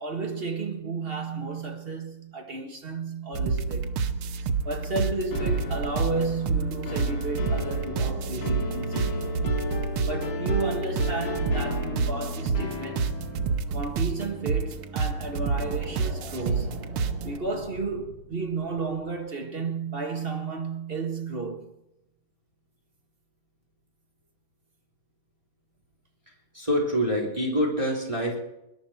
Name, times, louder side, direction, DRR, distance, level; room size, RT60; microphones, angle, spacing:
voice 1, 0.0-4.0 4.6-9.4 10.0-13.3 13.7-16.8 17.2-21.7, right 3 dB, 30° right, 1.6 m, -32 dB
sound 1, 3.3-17.4, right 4 dB, 85° right, 1.8 m, -29 dB
sound 2, 5.3-13.6, left 4 dB, 75° left, 2.5 m, -36 dB
sound 3, 15.5-19.3, equal, 45° left, 4.0 m, -44 dB
voice 2, 26.5-28.4, equal, 15° right, 3.3 m, -26 dB
20.5 x 11.5 x 4.3 m
omnidirectional pair, 2.3 m